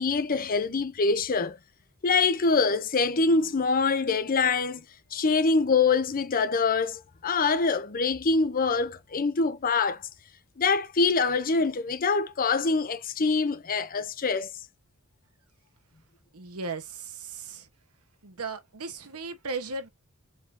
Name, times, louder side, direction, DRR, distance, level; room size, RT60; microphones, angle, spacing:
voice 1, 0.0-1.6 2.0-4.8 5.1-10.0 10.6-14.5, left 4 dB, 40° left, 0.6 m, -25 dB
voice 2, 16.3-17.7 18.2-19.9, right 3 dB, 80° right, 1.1 m, -36 dB
4.7 x 2.7 x 3.6 m
head